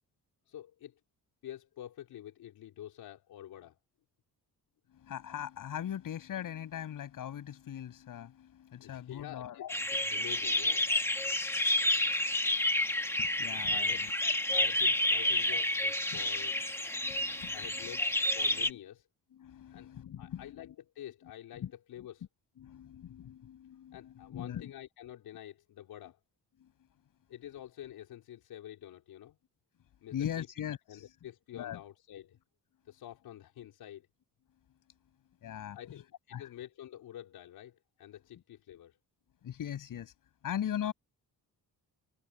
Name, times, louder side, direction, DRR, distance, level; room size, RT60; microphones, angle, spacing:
voice 1, 0.5-1.0 1.4-3.8 8.8-10.9 13.7-14.1 14.5-16.6 17.5-19.1 19.7-19.9 20.2-22.2 23.9-26.2 27.3-29.4 30.0-30.5 30.9-32.4 32.8-34.1 35.7-39.0, left 12 dB, 85° left, 4.4 m, -48 dB
voice 2, 4.9-9.7 13.2-14.1 14.5-14.6 16.1-16.6 16.9-17.9 18.4-18.8 19.3-20.7 21.2-21.7 22.6-24.7 26.6-26.7 30.1-31.1 31.5-31.8 35.4-36.0 36.3-36.5 39.4-40.1 40.4-40.9, left 10 dB, 60° left, 7.4 m, -40 dB
sound 1, 9.7-18.7, left 1 dB, 5° left, 1.4 m, -30 dB
cardioid pair, 160°, 36 cm